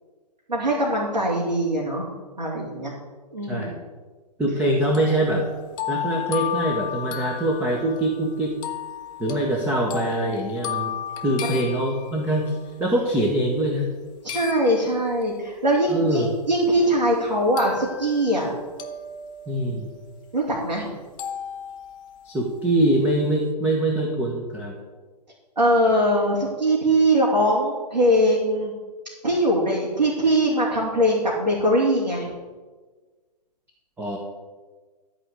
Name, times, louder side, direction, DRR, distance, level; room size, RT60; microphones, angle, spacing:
voice 1, 0.5-2.1 2.4-2.9 3.3-3.7 11.4-11.5 14.3-18.6 20.3-21.0 25.6-28.7 29.2-32.3, equal, 80° right, -5 dB, 3.1 m, -21 dB
voice 2, 3.5-3.8 4.4-5.5 5.9-8.5 9.2-12.5 12.8-13.9 15.9-16.3 19.5-19.9 22.2-24.7 34.0-34.2, right 1 dB, 10° right, -2 dB, 1.4 m, -23 dB
sound 1, 4.9-12.5 14.3-15.2 15.9-16.0 17.6-18.5 18.8-20.6 21.2-22.5, left 8 dB, 20° left, 1.0 m, -34 dB
13.0 x 5.0 x 8.2 m, 1.4 s
figure-of-eight pair, 125°, 21 cm